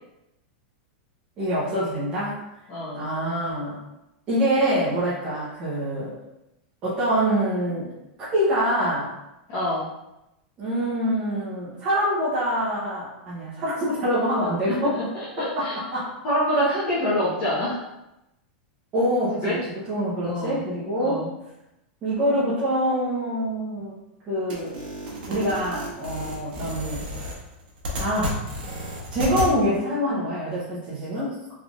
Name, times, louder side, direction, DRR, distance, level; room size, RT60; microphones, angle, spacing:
voice 1, 1.4-2.4 2.9-3.8 4.3-6.2 6.8-7.9 8.3-9.1 10.6-15.0 15.4-16.1 18.9-19.6 19.9-21.2 22.0-23.9 24.3-24.7 25.3-27.3 28.0-28.4 29.1-31.4, equal, 20° right, -10 dB, 0.9 m, -25 dB
voice 2, 2.7-3.0 9.5-9.9 14.8-15.8 16.2-17.8 19.4-19.6 20.2-20.6 21.0-21.3, equal, 30° left, -10 dB, 0.9 m, -26 dB
sound 1, 24.5-29.5, left 1 dB, 65° right, 1.0 m, -32 dB
3.4 x 3.3 x 2.5 m, 0.90 s
supercardioid pair, 180°, 5 cm